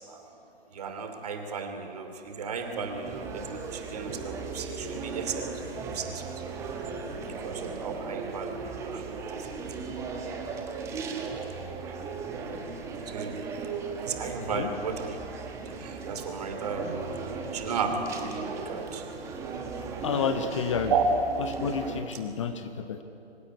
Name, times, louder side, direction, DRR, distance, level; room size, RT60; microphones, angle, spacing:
voice 1, 0.7-6.2 7.2-9.1 9.3-9.6 11.9-12.0 13.1-15.2 15.7-17.1 17.5-19.1 20.9-21.0, right 6 dB, 40° right, 6 dB, 2.8 m, -34 dB
sound 1, 2.2-22.0, right 4 dB, 10° right, 1.3 m, -37 dB
voice 2, 14.4-14.7 18.6-18.8 19.5-19.6 20.0-20.9 21.4-23.0, left 6 dB, 30° left, 8 dB, 1.0 m, -31 dB
25.5 x 15.5 x 9.8 m, 2.8 s
figure-of-eight pair, 140°, 31 cm